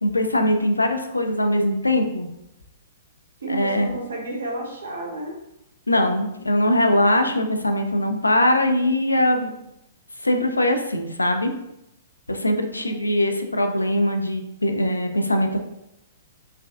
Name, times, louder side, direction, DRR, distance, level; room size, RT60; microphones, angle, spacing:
voice 1, 0.0-2.3 3.5-3.9 5.9-9.5 10.2-11.5 12.3-15.6, left 1 dB, 80° left, 5 dB, 0.4 m, -21 dB
voice 2, 3.4-5.4 12.7-13.2, right 2 dB, 65° right, -2 dB, 0.7 m, -32 dB
3.4 x 2.3 x 2.2 m, 0.85 s
figure-of-eight pair, 115°, 0 cm